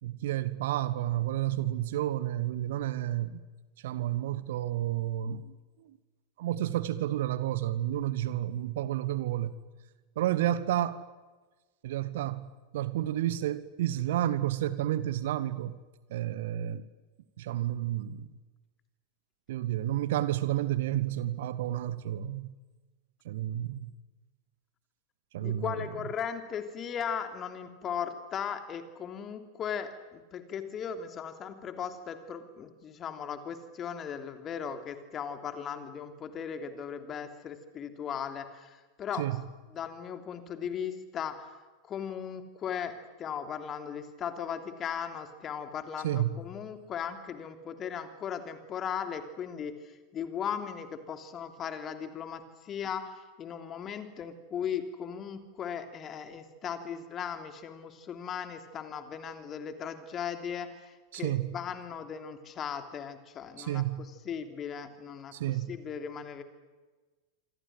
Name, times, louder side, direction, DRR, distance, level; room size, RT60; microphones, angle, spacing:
voice 1, 0.0-3.4 3.8-5.9 6.4-9.6 10.1-11.0 11.8-15.8 16.1-16.9 17.4-18.3 19.5-22.5 23.2-23.9 25.3-25.7 39.2-39.4 46.0-46.3 61.1-61.6 63.6-64.1 65.3-65.8, right 13 dB, 55° right, 1.2 m, -31 dB
voice 2, 25.4-39.3 39.7-41.6 41.8-66.4, left 8 dB, 25° left, 3.1 m, -37 dB
27.5 x 25.0 x 7.7 m
figure-of-eight pair, 90°, 0 cm